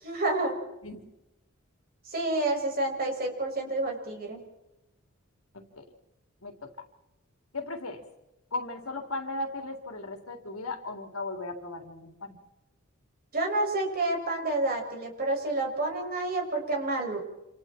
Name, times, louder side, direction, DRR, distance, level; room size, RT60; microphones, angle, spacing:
voice 1, 0.0-0.6 2.1-4.4 13.3-17.2, right 2 dB, 45° right, 1 dB, 6.6 m, -29 dB
voice 2, 7.5-8.0 8.5-12.4, left 2 dB, 85° left, 4 dB, 3.5 m, -36 dB
28.5 x 28.0 x 4.5 m, 0.94 s
head